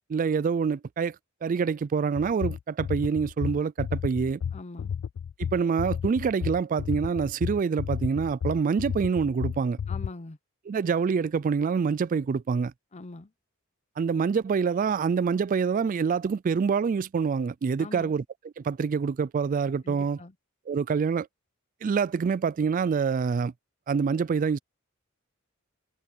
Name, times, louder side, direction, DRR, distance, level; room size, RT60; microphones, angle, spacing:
voice 1, 0.1-1.2 1.4-4.4 5.4-9.8 10.7-12.7 14.0-18.2 18.6-20.2 20.7-21.3 21.8-23.5 23.9-24.6, right 5 dB, 40° right, 0.3 m, -26 dB
sound 1, 2.2-10.1, left 7 dB, 80° left, 0.3 m, -32 dB
voice 2, 4.5-4.9 9.9-10.4 12.9-13.3 17.8-18.1 19.8-20.3, left 2 dB, 35° left, 0.7 m, -42 dB
head